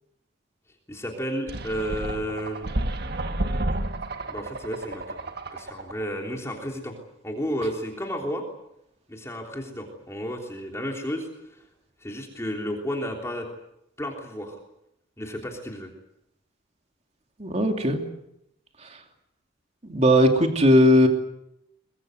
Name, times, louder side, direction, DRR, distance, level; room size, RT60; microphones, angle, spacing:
voice 1, 0.9-2.7 4.3-6.9 7.2-8.4 9.1-11.6 12.0-13.5 14.0-14.6 15.2-15.9, equal, 15° left, 1 dB, 3.3 m, -32 dB
sound 1, 1.5-6.0, right 1 dB, 55° right, 1.5 m, -31 dB
voice 2, 17.4-18.0 19.8-21.1, equal, 35° right, 4 dB, 2.8 m, -18 dB
23.0 x 22.5 x 7.9 m, 0.81 s
head